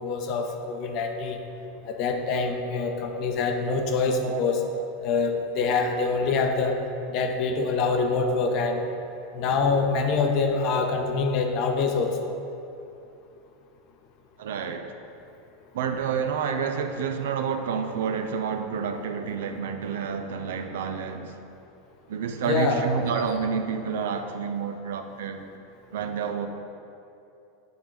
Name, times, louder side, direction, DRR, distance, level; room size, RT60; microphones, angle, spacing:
voice 1, 0.0-1.4 1.8-4.6 5.0-6.8 7.1-8.8 9.3-12.3 22.5-22.9, left 4 dB, 55° left, 4 dB, 0.9 m, -25 dB
voice 2, 14.4-14.9 15.7-21.3 22.1-25.5 25.9-26.5, right 6 dB, 80° right, 7 dB, 0.5 m, -29 dB
9.3 x 3.6 x 4.6 m, 2.7 s
hypercardioid pair, 105°, 0 cm